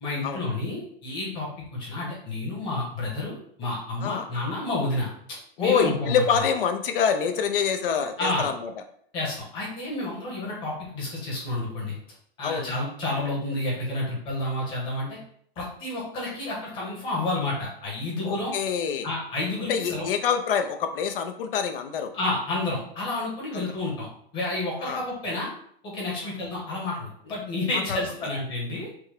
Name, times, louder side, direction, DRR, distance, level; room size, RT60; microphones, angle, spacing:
voice 1, 0.0-5.1 5.6-6.4 8.2-8.5 9.1-12.0 12.4-15.2 15.6-18.5 19.0-20.1 22.1-25.5 25.8-28.9, left 2 dB, 15° left, -5 dB, 1.1 m, -30 dB
voice 2, 5.6-8.7 12.4-12.8 18.2-19.1 19.7-22.1 23.5-23.7 24.8-25.0 27.9-28.3, left 7 dB, 65° left, 7 dB, 0.7 m, -26 dB
6.0 x 2.3 x 3.5 m, 0.63 s
supercardioid pair, 180°, 29 cm